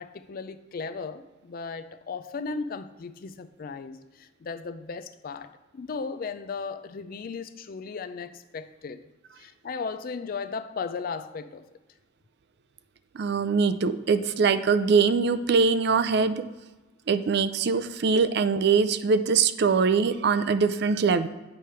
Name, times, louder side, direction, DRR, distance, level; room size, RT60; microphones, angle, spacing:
voice 1, 0.0-9.1 9.4-11.7, left 4 dB, 50° left, 10 dB, 0.4 m, -36 dB
voice 2, 13.1-16.4 17.1-21.3, right 5 dB, 60° right, 12 dB, 0.4 m, -22 dB
8.4 x 3.2 x 5.6 m, 1.2 s
head